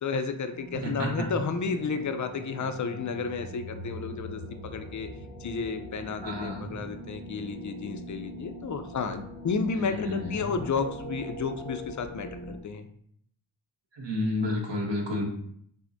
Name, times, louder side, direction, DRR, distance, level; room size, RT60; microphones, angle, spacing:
voice 1, 0.0-5.1 5.4-12.9, left 5 dB, 40° left, 8 dB, 0.4 m, -32 dB
sound 1, 0.5-12.6, equal, 85° right, 1.0 m, -42 dB
voice 2, 0.7-1.3 6.2-6.7 9.7-10.5 13.9-15.3, left 1 dB, 60° right, -1 dB, 1.2 m, -31 dB
5.9 x 2.1 x 2.6 m, 0.67 s
cardioid pair, 55°, 49 cm